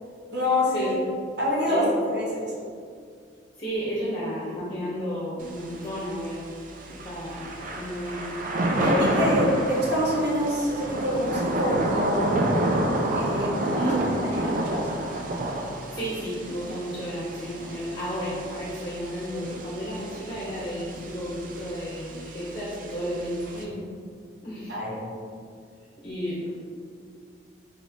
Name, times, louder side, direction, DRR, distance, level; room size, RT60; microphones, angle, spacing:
voice 1, 0.3-0.9 1.4-2.4 8.7-12.4 13.1-13.5 13.8-13.9 14.3-14.8 24.7-25.1, left 1 dB, 65° right, -5 dB, 1.2 m, -26 dB
voice 2, 3.6-6.4 6.9-8.3 8.9-9.3 13.7-14.1 15.9-23.8 24.4-24.8 26.0-26.5, equal, 35° left, -8 dB, 0.9 m, -32 dB
Thunder / Rain, 5.4-23.6, right 1 dB, 50° right, 0.5 m, -30 dB
4.2 x 3.6 x 3.5 m, 2.2 s
head